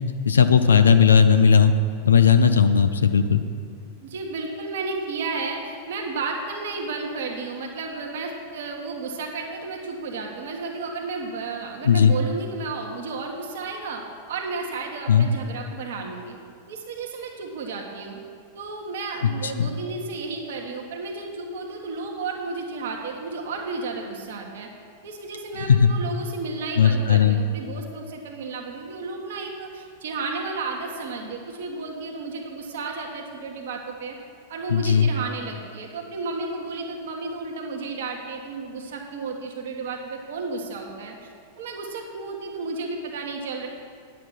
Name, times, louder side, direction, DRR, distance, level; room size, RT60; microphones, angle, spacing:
voice 1, 0.3-1.7 2.1-3.4 11.8-12.1 15.1-15.3 19.4-19.7 25.8-25.9 26.8-27.4 34.7-35.1, left 7 dB, 80° left, 10 dB, 0.5 m, -16 dB
voice 2, 4.0-14.0 14.3-16.4 16.7-18.2 18.5-24.7 25.0-34.1 34.5-43.7, right 3 dB, 65° right, 0 dB, 1.4 m, -33 dB
9.7 x 7.5 x 6.2 m, 2.1 s
hypercardioid pair, 95°, 0 cm